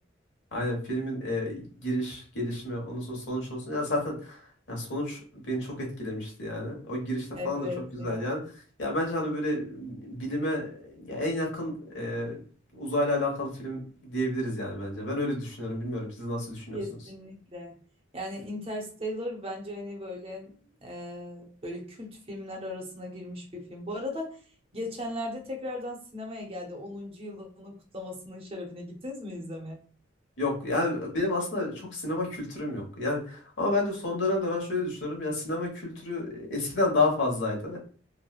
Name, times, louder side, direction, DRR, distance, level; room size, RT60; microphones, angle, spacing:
voice 1, 0.5-4.4 4.7-7.7 7.9-8.4 8.8-12.4 12.7-16.8 30.4-37.8, left 1 dB, 80° left, -1 dB, 1.1 m, -30 dB
voice 2, 7.3-8.4 16.7-17.7 18.1-24.4 24.7-29.8, left 1 dB, 30° right, 1 dB, 0.6 m, -37 dB
3.0 x 2.1 x 2.3 m, 0.41 s
head